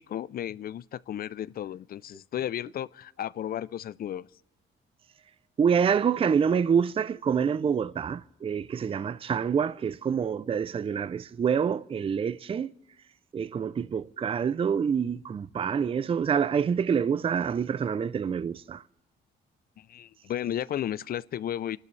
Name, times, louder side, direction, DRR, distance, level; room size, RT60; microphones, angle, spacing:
voice 1, 0.0-4.3 19.8-21.8, left 11 dB, 50° left, 0.4 m, -34 dB
voice 2, 5.6-12.7 13.3-18.8, right 7 dB, 30° right, 0.4 m, -27 dB
27.5 x 12.0 x 3.2 m
cardioid pair, 90°, 20 cm